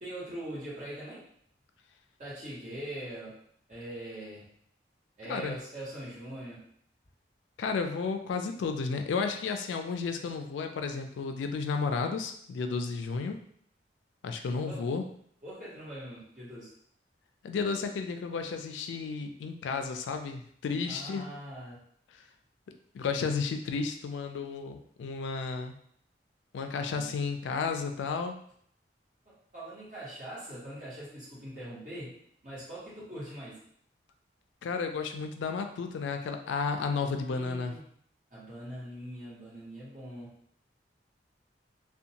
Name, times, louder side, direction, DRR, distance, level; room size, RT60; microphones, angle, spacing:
voice 1, 0.0-1.3 2.2-3.4 3.7-4.5 5.2-6.6 14.7-14.9 15.4-16.7 20.9-21.8 26.8-27.1 29.2-33.6 37.2-37.8 38.3-40.4, right 1 dB, 40° right, -9 dB, 1.3 m, -42 dB
voice 2, 5.3-5.6 7.6-13.4 14.2-15.0 17.4-21.3 22.9-25.7 26.5-28.4 34.6-37.8, left 5 dB, 85° left, 6 dB, 0.3 m, -32 dB
2.6 x 2.2 x 2.8 m, 0.63 s
head